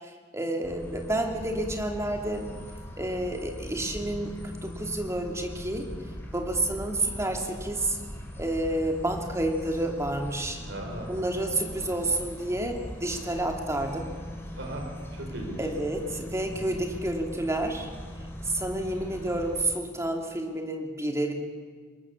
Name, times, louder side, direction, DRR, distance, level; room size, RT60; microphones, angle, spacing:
voice 1, 0.3-2.5 3.0-5.9 6.3-8.0 8.4-10.6 11.1-14.1 15.6-17.9 18.5-21.3, right 1 dB, 15° right, 2 dB, 2.7 m, -30 dB
sound 1, 0.6-19.6, equal, 10° left, 4.5 m, -40 dB
voice 2, 10.6-11.1 14.5-15.6 16.5-16.7, right 1 dB, 70° right, 1 dB, 5.0 m, -38 dB
24.5 x 21.0 x 7.2 m, 1.5 s
head